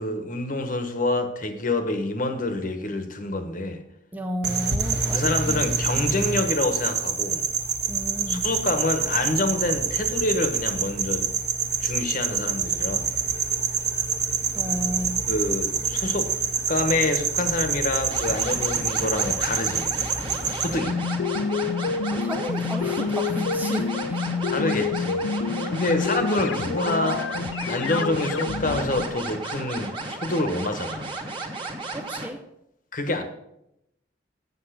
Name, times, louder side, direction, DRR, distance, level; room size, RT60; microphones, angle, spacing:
voice 1, 0.0-3.8 5.1-7.4 8.3-11.3 11.8-13.1 15.3-16.3 16.7-19.9 20.2-21.0 24.5-25.2 25.7-27.3 27.7-31.1 32.9-33.2, left 2 dB, 45° left, 1.2 m, -27 dB
voice 2, 4.1-5.5 7.9-8.5 14.6-15.2 22.1-24.2 25.5-25.8 31.9-32.4, equal, 10° right, 0.5 m, -32 dB
sound 1, 4.4-20.8, right 6 dB, 60° right, 1.3 m, -26 dB
sound 2, 18.1-32.3, right 2 dB, 25° right, 1.5 m, -34 dB
sound 3, 20.7-29.1, left 5 dB, 85° left, 0.4 m, -28 dB
8.0 x 7.5 x 6.1 m
head